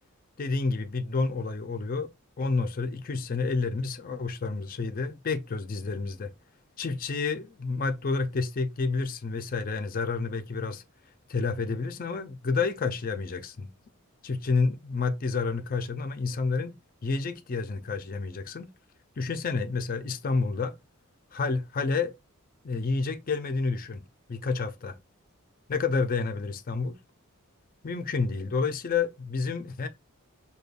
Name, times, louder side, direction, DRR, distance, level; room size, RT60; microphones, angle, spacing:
voice 1, 0.4-2.1 2.4-6.3 6.8-10.8 11.3-13.7 14.2-16.7 17.0-18.7 19.2-20.7 21.3-22.1 22.6-24.0 24.3-25.0 25.7-27.0 27.8-29.9, left 4 dB, 40° left, 0.4 m, -29 dB
5.1 x 2.2 x 2.3 m
head